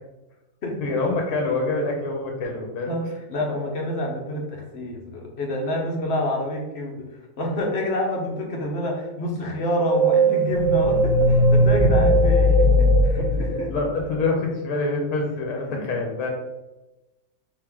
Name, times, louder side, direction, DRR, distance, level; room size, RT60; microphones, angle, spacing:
voice 1, 0.8-2.9 13.4-16.3, left 3 dB, 75° left, 1 dB, 1.1 m, -26 dB
voice 2, 2.9-7.0 7.4-13.7 15.7-15.8, left 1 dB, 50° left, 0 dB, 0.9 m, -28 dB
sound 1, 9.6-14.2, equal, 35° left, 1.7 m, -18 dB
3.4 x 2.9 x 3.5 m, 1.0 s
omnidirectional pair, 1.6 m